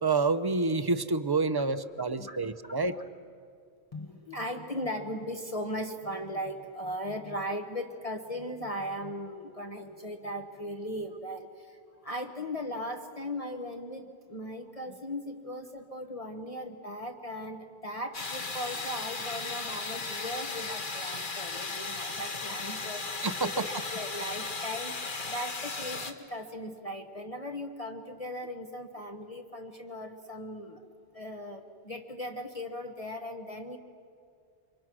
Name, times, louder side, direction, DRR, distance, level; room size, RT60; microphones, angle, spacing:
voice 1, 0.0-3.0 23.2-23.7, right 3 dB, 25° right, 12 dB, 0.7 m, -28 dB
voice 2, 3.9-30.8 31.1-33.8, equal, 35° left, 3 dB, 1.3 m, -38 dB
sound 1, 18.1-26.1, left 3 dB, 50° left, 1.6 m, -36 dB
29.5 x 25.5 x 6.2 m, 2.3 s
omnidirectional pair, 1.1 m